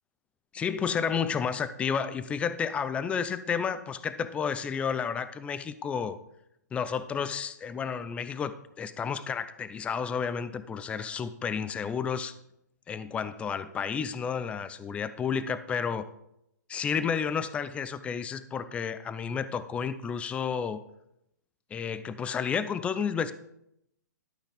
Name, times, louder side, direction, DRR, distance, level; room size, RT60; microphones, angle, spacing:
voice 1, 0.5-6.2 6.7-12.3 12.9-16.1 16.7-20.8 21.7-23.3, left 6 dB, 10° left, 13 dB, 0.5 m, -31 dB
12.0 x 5.7 x 5.1 m, 0.79 s
hypercardioid pair, 140°, 10 cm